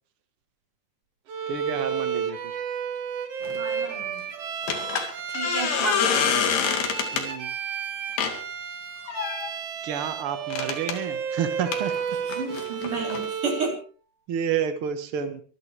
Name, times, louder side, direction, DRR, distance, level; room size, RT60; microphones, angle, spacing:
Bowed string instrument, 1.3-13.8, right 7 dB, 50° right, 2.0 m, -32 dB
voice 1, 1.5-2.5 7.1-7.5 9.8-11.9 14.3-15.4, right 8 dB, 85° right, 8 dB, 1.2 m, -29 dB
sound 1, 3.4-3.6 4.7-7.3 8.2-8.4 9.1-9.5 10.5-11.0 11.7-13.3, left 7 dB, 85° left, 4.3 m, -26 dB
voice 2, 3.6-4.2 5.3-6.5 12.4-13.8, right 3 dB, 30° right, 0 dB, 5.5 m, -31 dB
25.0 x 12.0 x 3.3 m, 0.39 s
omnidirectional pair, 4.6 m